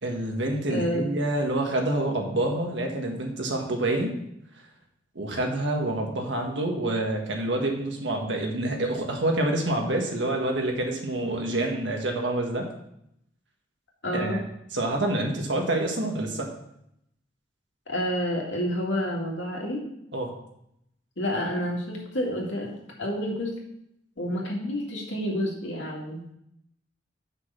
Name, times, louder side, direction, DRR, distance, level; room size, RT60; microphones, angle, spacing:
voice 1, 0.0-4.1 5.1-12.7 14.1-14.4 14.7-16.5 20.1-20.3, right 1 dB, 70° right, 2 dB, 1.6 m, -27 dB
voice 2, 0.7-1.2 14.0-14.4 17.9-19.8 21.2-22.7 23.0-23.5 24.2-26.2, equal, 80° left, -2 dB, 2.1 m, -29 dB
6.4 x 5.9 x 5.7 m, 0.77 s
head